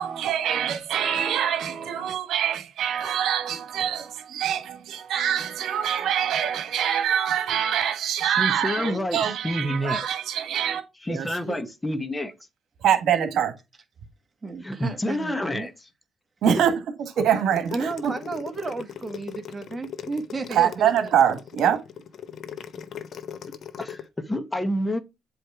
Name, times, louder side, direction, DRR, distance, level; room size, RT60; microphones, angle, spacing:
voice 1, 0.0-10.8 11.1-11.6 12.8-13.5 16.4-16.7 17.2-18.1 20.5-21.8, right 9 dB, 75° right, 1.4 m, -24 dB
voice 2, 8.2-10.1 11.0-12.3 14.6-15.7 16.4-16.6 23.8-25.0, left 1 dB, 15° left, 0.9 m, -28 dB
voice 3, 14.4-15.7 17.7-20.9, right 3 dB, 25° right, 1.3 m, -32 dB
sound 1, 17.4-24.0, left 8 dB, 60° left, 0.7 m, -39 dB
7.7 x 3.1 x 4.7 m
cardioid pair, 90°, 0 cm